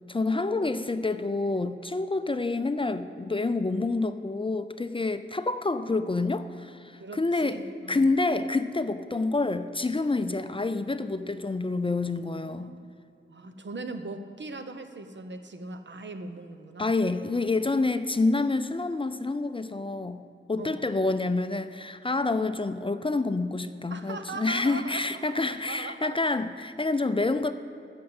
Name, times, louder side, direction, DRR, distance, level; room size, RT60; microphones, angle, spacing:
voice 1, 0.1-7.6 7.9-12.7 16.8-20.2 20.5-27.5, left 3 dB, 25° left, 11 dB, 0.5 m, -28 dB
voice 2, 7.0-8.1 12.4-12.9 13.3-17.0 20.6-20.9 23.9-25.1 25.4-26.3, right 3 dB, 65° right, 8 dB, 0.9 m, -40 dB
14.5 x 6.5 x 7.8 m, 2.6 s
wide cardioid pair, 80°, 21 cm